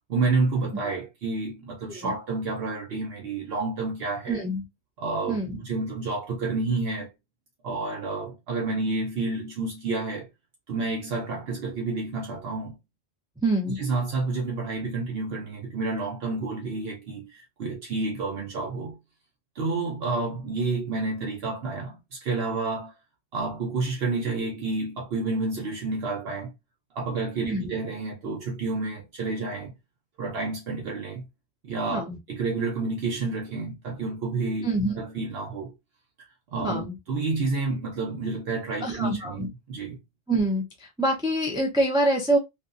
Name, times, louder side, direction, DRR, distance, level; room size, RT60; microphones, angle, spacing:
voice 1, 0.1-4.4 5.0-7.1 7.6-10.3 10.7-12.7 13.8-19.0 19.6-22.9 23.3-26.5 26.9-29.7 30.2-31.3 31.6-32.0 32.3-34.7 35.0-35.7 36.5-40.0, right 3 dB, 75° right, 0.9 m, -29 dB
voice 2, 4.3-4.6 5.3-5.6 13.4-13.8 27.4-27.7 31.9-32.2 34.6-34.9 36.6-37.0 38.8-39.5 40.3-42.4, right 1 dB, 5° right, 0.4 m, -25 dB
2.8 x 2.5 x 2.4 m
omnidirectional pair, 1.1 m